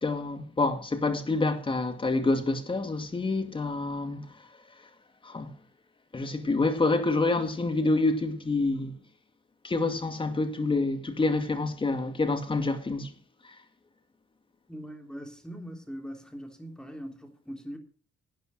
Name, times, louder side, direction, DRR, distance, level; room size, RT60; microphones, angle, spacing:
voice 1, 0.0-4.3 5.2-5.5 6.1-9.0 9.6-13.1 13.4-13.6, left 3 dB, 25° left, 2.3 m, -27 dB
voice 2, 14.7-17.8, equal, 5° left, 3.4 m, -41 dB
12.0 x 9.4 x 6.4 m
cardioid pair, 90°, 20 cm